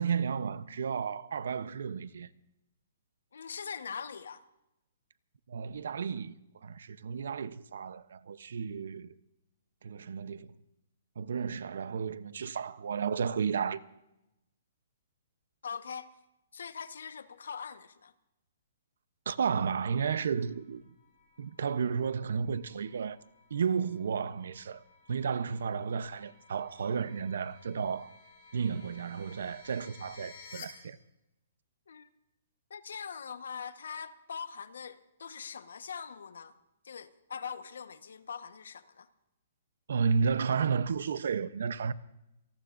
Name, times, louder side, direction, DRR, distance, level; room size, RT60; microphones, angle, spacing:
voice 1, 0.0-2.3 5.5-6.4 6.6-9.1 9.8-10.6 11.2-13.8 19.3-20.9 21.4-23.2 23.5-24.8 25.1-28.1 28.5-31.0 39.9-41.9, right 6 dB, 65° right, 0.7 m, -32 dB
voice 2, 3.3-4.5 15.6-16.2 16.5-18.1 31.9-32.1 32.7-36.5 36.8-39.1, left 6 dB, 85° left, 1.1 m, -42 dB
sound 1, 19.7-30.6, left 5 dB, 35° left, 6.5 m, -56 dB
27.5 x 19.0 x 2.6 m
hypercardioid pair, 180°, 0 cm